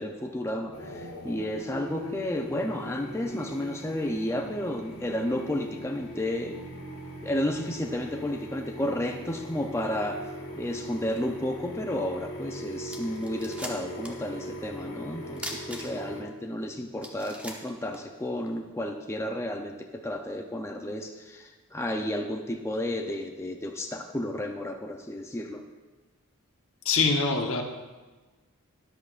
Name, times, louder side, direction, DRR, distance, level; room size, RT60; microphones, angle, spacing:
voice 1, 0.0-6.5 7.2-25.6, left 1 dB, 10° left, 2 dB, 0.5 m, -32 dB
sound 1, 0.7-16.2, equal, 80° left, 1.7 m, -40 dB
sound 2, 12.5-12.6 12.9-14.3 14.5-14.6 15.4-16.2 16.7-16.8 17.0-18.5, equal, 5° right, 0.9 m, -40 dB
voice 2, 26.8-27.6, left 4 dB, 65° left, 3 dB, 1.0 m, -24 dB
13.0 x 10.5 x 2.4 m, 1.3 s
head